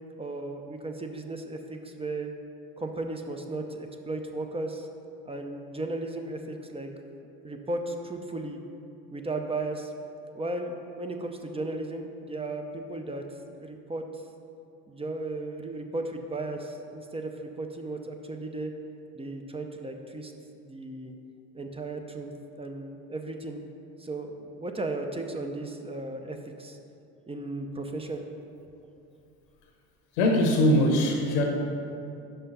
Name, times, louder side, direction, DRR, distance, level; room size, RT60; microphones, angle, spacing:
voice 1, 0.2-2.3 2.8-4.9 5.3-6.9 7.4-8.6 9.1-9.9 10.3-13.2 13.6-14.0 14.9-18.7 19.1-20.3 20.6-21.2 21.5-22.3 22.6-23.6 24.0-26.8 27.3-28.2, right 2 dB, 15° right, 4 dB, 0.6 m, -35 dB
voice 2, 30.2-31.4, left 1 dB, 90° left, 2 dB, 1.2 m, -21 dB
5.7 x 5.6 x 5.5 m, 2.6 s
supercardioid pair, 80°, 33 cm